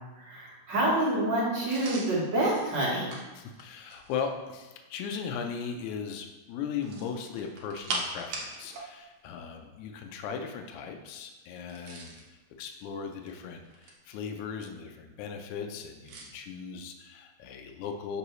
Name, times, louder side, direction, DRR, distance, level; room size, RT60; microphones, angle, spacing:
voice 1, 0.0-3.1, right 1 dB, 45° right, -8 dB, 1.7 m, -27 dB
sound 1, 1.7-4.3 6.7-8.9 9.2-9.3 11.6-12.3 13.0-14.2 16.1-16.3, right 2 dB, 65° right, 1.8 m, -40 dB
voice 2, 3.4-18.2, left 6 dB, 85° left, 4 dB, 2.0 m, -38 dB
6.7 x 4.6 x 3.1 m, 1.2 s
omnidirectional pair, 3.4 m